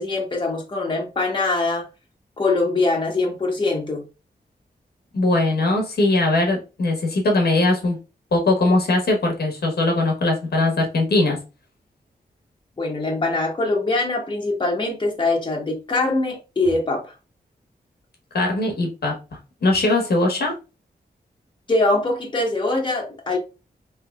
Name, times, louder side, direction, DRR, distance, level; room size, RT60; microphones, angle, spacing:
voice 1, 0.0-1.9 2.4-4.0 12.8-17.1 21.7-23.4, left 2 dB, 30° left, 1.0 m, -23 dB
voice 2, 5.1-8.0 8.3-11.4 18.3-19.2 19.6-20.5, left 2 dB, 70° left, 1.1 m, -20 dB
3.2 x 3.2 x 2.3 m
wide cardioid pair, 85°, 17 cm